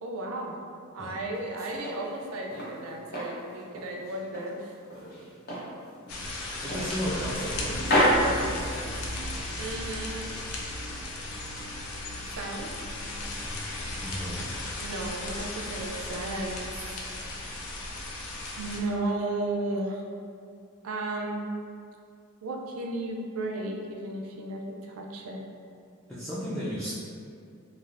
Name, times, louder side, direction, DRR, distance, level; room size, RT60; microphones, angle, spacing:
voice 1, 0.0-0.6 0.9-4.7 9.6-10.3 12.4-12.7 14.8-17.0 18.6-20.0 20.8-21.5 22.4-25.5, right 2 dB, 75° right, 1 dB, 0.4 m, -34 dB
sound 1, 1.3-2.8 3.1-4.5 4.9-5.7 6.1-6.2 6.7-7.5 7.8-9.2, equal, 45° left, 0.6 m, -28 dB
sound 2, 6.1-18.8, left 2 dB, 90° left, 0.4 m, -36 dB
voice 2, 6.6-7.8 14.0-14.5 26.1-26.9, equal, ahead, -11 dB, 0.3 m, -34 dB
sound 3, 6.8-14.6, right 1 dB, 30° left, 1.0 m, -42 dB
3.2 x 2.4 x 2.4 m, 2.4 s
head